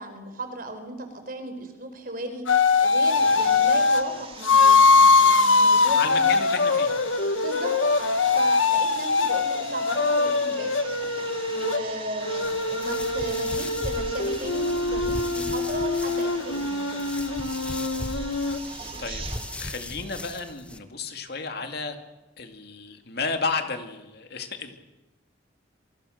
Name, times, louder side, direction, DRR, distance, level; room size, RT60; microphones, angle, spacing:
voice 1, 0.0-6.3 7.3-7.7 8.1-10.7 11.5-17.0, right 1 dB, 45° right, 7 dB, 4.6 m, -36 dB
sound 1, 2.5-4.0 4.4-11.8 12.2-18.6, left 4 dB, 80° left, 1.7 m, -22 dB
sound 2, 3.1-19.6, right 5 dB, 30° right, 2.4 m, -42 dB
voice 2, 5.9-6.9 14.4-14.5 19.0-19.2 19.6-22.0 22.4-24.8, left 4 dB, 50° left, 6 dB, 2.5 m, -32 dB
sound 3, 12.4-20.8, left 1 dB, 5° left, 1.1 m, -38 dB
27.0 x 25.0 x 6.7 m, 1.0 s
head